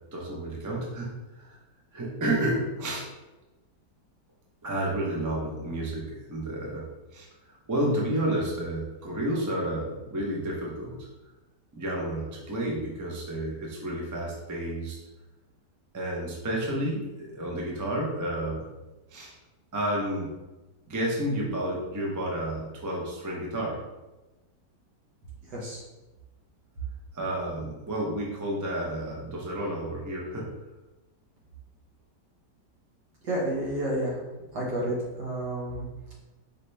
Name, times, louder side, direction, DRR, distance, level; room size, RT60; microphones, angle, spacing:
voice 1, 0.1-1.6 1.9-3.1 4.6-6.9 7.1-11.1 11.7-15.0 15.9-18.7 19.1-19.3 19.7-20.3 20.9-23.8 27.1-30.5, right 1 dB, 25° right, -3 dB, 0.3 m, -31 dB
voice 2, 25.5-25.8 33.2-34.2 34.5-35.9, right 1 dB, 80° right, -5 dB, 2.0 m, -30 dB
5.0 x 2.8 x 3.3 m, 1.1 s
omnidirectional pair, 1.8 m